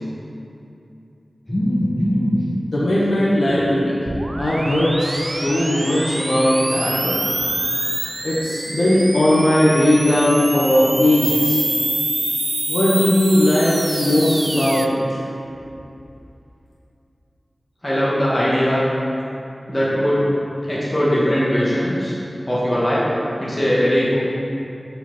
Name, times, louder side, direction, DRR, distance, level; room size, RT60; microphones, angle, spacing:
voice 1, 1.5-2.4 17.8-18.9 19.7-20.2 20.7-22.1 22.5-23.0 23.4-24.2, equal, 20° left, -9 dB, 1.4 m, -19 dB
voice 2, 2.7-3.9 4.4-7.2 8.2-11.6 12.7-15.0, left 1 dB, 80° left, -8 dB, 1.1 m, -18 dB
sound 1, 4.1-14.9, right 1 dB, 35° right, 0.4 m, -26 dB
5.5 x 4.4 x 5.8 m, 2.7 s
wide cardioid pair, 65°, 0 cm